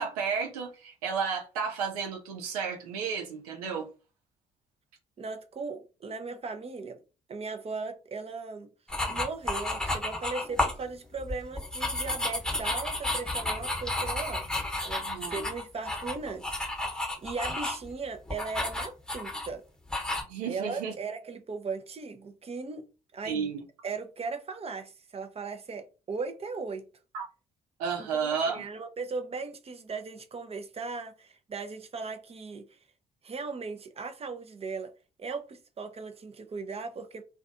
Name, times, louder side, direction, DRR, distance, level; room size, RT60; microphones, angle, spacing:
voice 1, 0.0-3.9 15.0-15.5 20.3-20.9 23.2-23.6 27.1-27.3 27.8-28.7, right 6 dB, 85° right, 0.6 m, -32 dB
voice 2, 5.2-7.0 7.3-8.7 9.1-14.5 14.8-16.6 16.9-19.6 20.4-22.8 23.1-23.5 23.8-26.9 28.0-32.8 33.2-34.9 35.2-37.2, right 4 dB, 35° right, 0.5 m, -38 dB
sound 1, 8.9-10.8 11.2-17.9 18.3-19.5 19.9-20.2, left 2 dB, 5° left, 0.9 m, -32 dB
2.5 x 2.3 x 2.5 m
hypercardioid pair, 45°, 19 cm